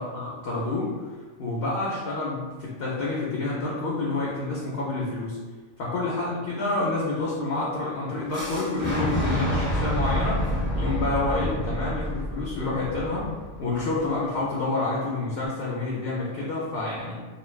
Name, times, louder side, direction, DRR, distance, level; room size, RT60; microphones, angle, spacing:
voice 1, 0.0-5.4 5.8-10.4 10.7-13.3 13.6-17.1, left 2 dB, 60° left, -5 dB, 0.7 m, -28 dB
Fire / Explosion, 8.3-14.2, equal, 10° right, 0.7 m, -28 dB
2.7 x 2.3 x 3.1 m, 1.4 s
omnidirectional pair, 1.2 m